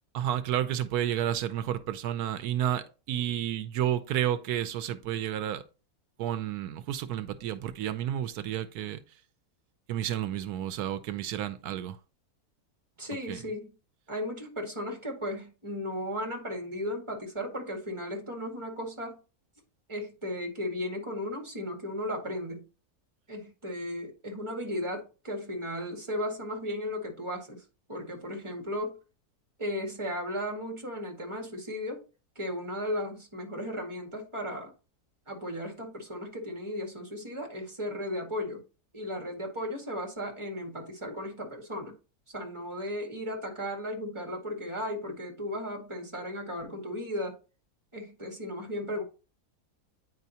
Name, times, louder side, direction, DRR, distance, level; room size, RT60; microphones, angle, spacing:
voice 1, 0.1-5.6 6.2-9.0 9.9-12.0 13.3-13.4, right 11 dB, 80° right, 1.1 m, -31 dB
voice 2, 13.0-13.7 14.1-19.2 19.9-22.6 23.3-27.6 27.9-29.0 29.6-32.0 32.4-34.7 35.3-38.6 38.9-41.9 42.3-47.4 47.9-49.0, left 1 dB, 20° right, 2.0 m, -35 dB
9.2 x 4.8 x 2.8 m
omnidirectional pair, 1.6 m